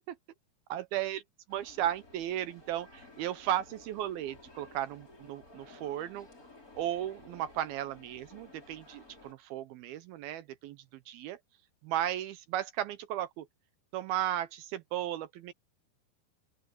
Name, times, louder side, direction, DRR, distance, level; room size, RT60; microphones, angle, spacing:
voice 1, 0.7-1.2 1.5-6.3 6.8-10.8 11.1-11.4 11.8-13.5 13.9-15.5, right 12 dB, 75° right, 2.4 m, -35 dB
sound 1, 1.5-9.3, left 2 dB, 20° left, 5.6 m, -55 dB
open air
omnidirectional pair, 4.9 m